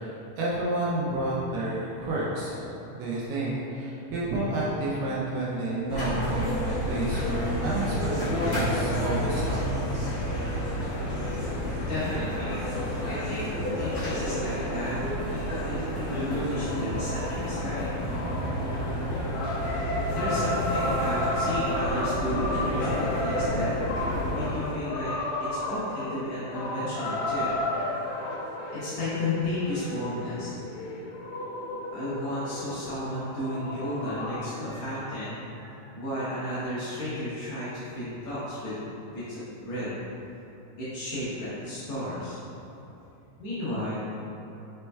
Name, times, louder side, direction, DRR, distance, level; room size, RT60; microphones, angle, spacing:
voice 1, 0.0-2.6 2.9-9.8, right 1 dB, 75° right, -6 dB, 2.1 m, -30 dB
sound 1, 5.9-24.5, equal, 45° left, 1.8 m, -30 dB
voice 2, 11.7-12.6 13.1-13.5 13.8-17.9 20.1-23.9 24.3-25.1 25.7-27.5 28.7-30.6 31.9-38.8 39.1-40.0 40.8-42.4 43.4-44.0, left 1 dB, 65° left, -11 dB, 1.9 m, -33 dB
sound 2, 15.4-34.4, left 1 dB, 90° left, 2.3 m, -33 dB
5.3 x 4.3 x 2.3 m, 2.9 s
omnidirectional pair, 4.0 m